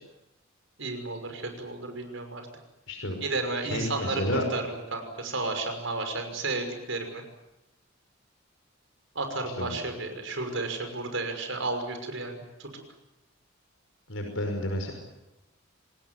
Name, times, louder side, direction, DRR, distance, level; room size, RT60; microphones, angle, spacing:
voice 1, 0.8-2.4 3.2-4.2 4.5-7.2 9.1-12.8, right 3 dB, 70° right, 6 dB, 6.0 m, -32 dB
voice 2, 3.7-4.4 9.6-9.7 14.1-14.9, left 1 dB, 75° left, 3 dB, 5.6 m, -30 dB
27.0 x 20.0 x 9.4 m, 0.97 s
head